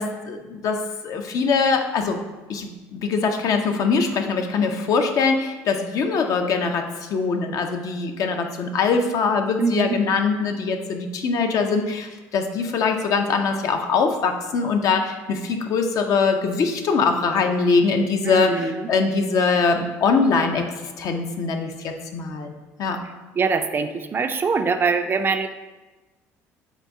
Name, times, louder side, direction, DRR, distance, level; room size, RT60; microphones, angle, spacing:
voice 1, 0.0-2.2 2.5-20.7 21.0-22.5 22.8-23.0, left 4 dB, 60° left, 5 dB, 0.5 m, -22 dB
voice 2, 9.6-10.0 18.2-18.8 23.4-25.5, right 5 dB, 35° right, 9 dB, 0.3 m, -23 dB
3.8 x 2.6 x 4.6 m, 1.1 s
supercardioid pair, 80°, 7 cm